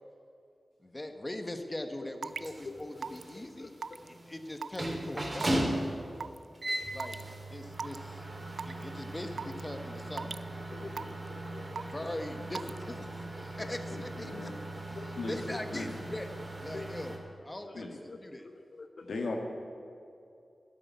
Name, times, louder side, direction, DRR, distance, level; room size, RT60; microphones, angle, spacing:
voice 1, 0.8-3.7 4.3-5.7 6.9-7.2 7.5-8.2 8.6-10.5 11.9-14.5 14.9-16.3 16.6-17.2 17.4-18.5, left 1 dB, 25° left, 6 dB, 1.3 m, -41 dB
Raindrop / Water tap faucet / Drip, 2.2-2.5 3.0-3.3 3.8-4.1 4.6-4.9 5.4-5.6 6.2-6.4 7.0-7.2 7.7-8.0 8.6-8.8 9.4-9.6 10.2-10.4 11.0-11.3 11.8-12.1 12.5-12.8, right 5 dB, 80° right, 0.3 m, -37 dB
sound 1, 2.3-17.2, right 1 dB, 40° right, 2.8 m, -38 dB
voice 2, 2.6-4.0 10.7-12.1 13.6-14.0 14.3-14.4 14.9-15.1 15.5-15.6 16.3-16.5 16.7-17.0 17.7-17.8 18.1-18.2 18.4-19.1, left 3 dB, 65° left, 5 dB, 0.8 m, -47 dB
voice 3, 13.9-14.5 15.2-15.9 17.7-17.9 19.0-19.4, left 3 dB, 80° left, 2 dB, 1.8 m, -38 dB
12.0 x 8.2 x 9.6 m, 2.5 s
cardioid pair, 40°, 0 cm